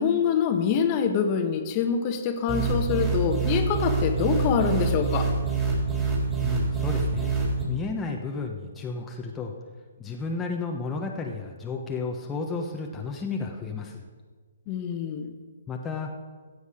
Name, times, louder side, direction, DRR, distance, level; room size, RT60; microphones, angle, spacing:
voice 1, 0.0-5.3 14.7-15.3, left 7 dB, 35° left, 6 dB, 1.3 m, -25 dB
sound 1, 2.5-7.6, right 4 dB, 15° right, 3.6 m, -26 dB
voice 2, 6.4-7.3 7.7-9.5 10.0-14.0 15.7-16.1, left 4 dB, 15° left, 0 dB, 1.1 m, -32 dB
15.0 x 8.2 x 5.0 m, 1.5 s
figure-of-eight pair, 130°, 0 cm